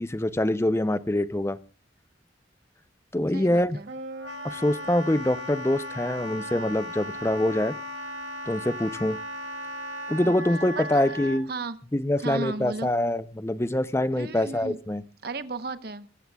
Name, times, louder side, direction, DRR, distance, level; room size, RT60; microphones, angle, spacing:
voice 1, 0.0-1.6 3.1-3.8 4.4-7.7 8.5-9.2 10.1-11.5 11.9-15.0, left 1 dB, 15° left, 14 dB, 0.5 m, -25 dB
voice 2, 3.3-3.9 10.2-10.4 10.7-11.1 11.5-11.8 12.2-12.9 14.2-14.8 15.2-16.1, right 3 dB, 55° right, 11 dB, 1.0 m, -35 dB
Wind instrument woodwind instrument, 3.9-11.4, left 1 dB, 75° right, 1.7 m, -36 dB
23.5 x 15.5 x 2.3 m, 0.37 s
head